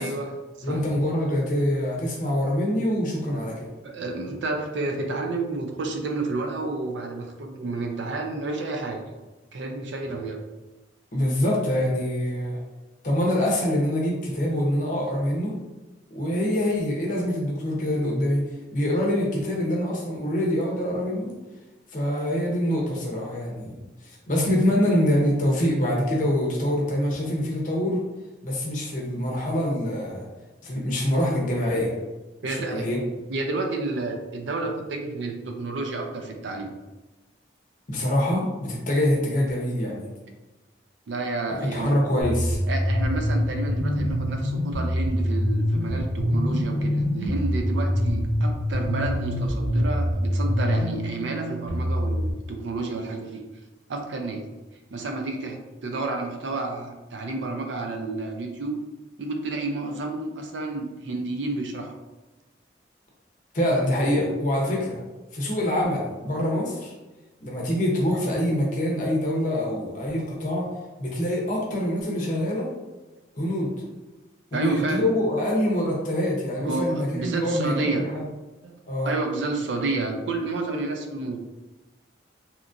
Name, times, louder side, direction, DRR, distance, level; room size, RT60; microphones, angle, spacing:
voice 1, 0.0-0.8 3.8-9.0 9.5-10.4 32.4-32.9 33.3-36.8 41.1-41.9 42.7-53.4 53.9-54.4 54.9-58.7 59.2-61.9 74.5-75.1 76.6-78.1 78.6-78.8 79.0-81.4, right 2 dB, 75° right, 3 dB, 0.4 m, -30 dB
voice 2, 0.6-3.7 11.1-12.6 13.0-15.5 16.1-18.4 18.7-21.3 21.9-23.8 24.3-28.0 28.4-30.2 30.6-31.9 32.4-33.0 37.9-40.1 41.5-42.6 63.5-65.0 65.3-66.9 67.4-70.7 71.0-72.7 73.3-73.7 74.5-78.3 78.9-79.1, left 1 dB, 45° left, -2 dB, 0.7 m, -25 dB
sound 1, 42.2-52.3, equal, 35° right, 1.1 m, -25 dB
2.8 x 2.5 x 2.5 m, 1.1 s
head